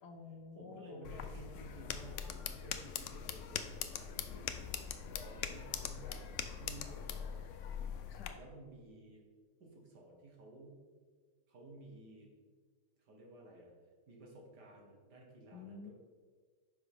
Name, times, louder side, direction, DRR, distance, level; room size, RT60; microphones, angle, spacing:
voice 1, 0.0-1.1 8.0-8.4 15.5-15.9, left 4 dB, 70° left, 4 dB, 1.4 m, -51 dB
voice 2, 0.6-7.5 8.3-9.3 9.6-10.8 11.5-12.3 13.0-13.7 14.1-15.9, right 2 dB, 65° right, 0 dB, 2.0 m, -54 dB
sound 1, 1.0-8.3, left 8 dB, 90° left, 0.6 m, -42 dB
9.7 x 5.9 x 3.5 m, 1.5 s
omnidirectional pair, 1.9 m